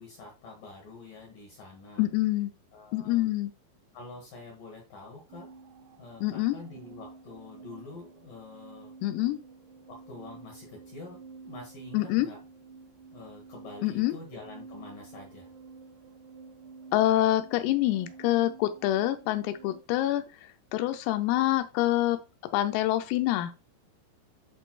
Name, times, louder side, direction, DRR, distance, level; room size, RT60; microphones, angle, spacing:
voice 1, 0.0-2.0 2.7-3.2 3.9-5.5 6.0-8.9 9.9-12.4 13.1-15.5, left 3 dB, 70° left, 0 dB, 2.1 m, -46 dB
voice 2, 2.0-2.5 2.9-3.5 6.2-6.6 9.0-9.4 11.9-12.3 13.8-14.1 16.9-20.2 20.7-22.2 22.5-23.5, left 15 dB, 90° left, 8 dB, 3.4 m, -26 dB
sound 1, 5.3-19.8, right 4 dB, 90° right, 4.3 m, -50 dB
12.0 x 4.5 x 2.3 m, 0.28 s
omnidirectional pair, 6.0 m